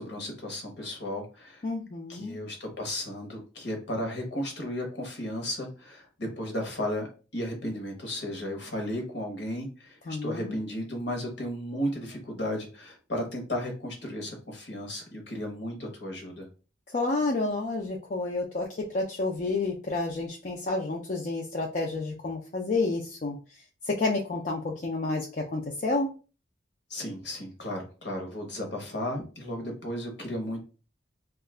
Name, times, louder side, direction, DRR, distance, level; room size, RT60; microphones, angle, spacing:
voice 1, 0.0-1.6 2.1-7.1 7.3-16.5 26.9-30.6, left 1 dB, 60° left, 2 dB, 1.0 m, -34 dB
voice 2, 1.6-2.4 10.1-10.6 16.9-23.4 23.9-26.1, left 3 dB, 40° left, 0 dB, 0.4 m, -30 dB
2.7 x 2.4 x 3.2 m, 0.35 s
head